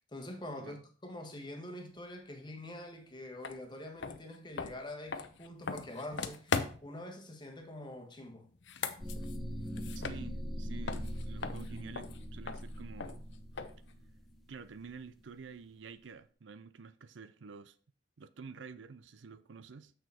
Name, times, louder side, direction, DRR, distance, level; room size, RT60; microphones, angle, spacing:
voice 1, 0.0-8.5, left 1 dB, 25° left, 1.3 m, -45 dB
sound 1, 3.4-3.6 4.0-7.0 8.5-10.6 10.9-13.9, left 5 dB, 70° left, 0.7 m, -39 dB
sound 2, 9.0-15.0, equal, ahead, 0.8 m, -41 dB
voice 2, 9.9-13.2 14.5-17.8 18.2-19.9, right 5 dB, 80° right, 0.5 m, -49 dB
6.9 x 6.4 x 4.3 m
head